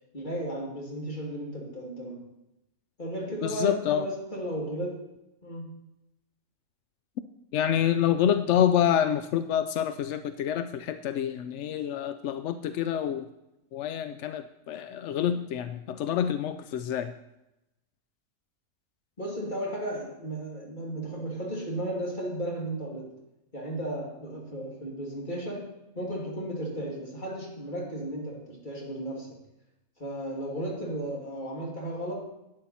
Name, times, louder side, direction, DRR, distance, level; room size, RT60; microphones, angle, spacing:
voice 1, 0.1-2.2 3.0-5.0 5.4-5.8 19.2-23.2 23.5-29.4 30.0-32.3, right 1 dB, 30° left, -3 dB, 2.7 m, -34 dB
voice 2, 3.4-4.1 7.5-13.3 13.7-17.1, left 9 dB, 70° left, 10 dB, 0.6 m, -27 dB
11.5 x 8.7 x 4.2 m, 0.90 s
omnidirectional pair, 1.7 m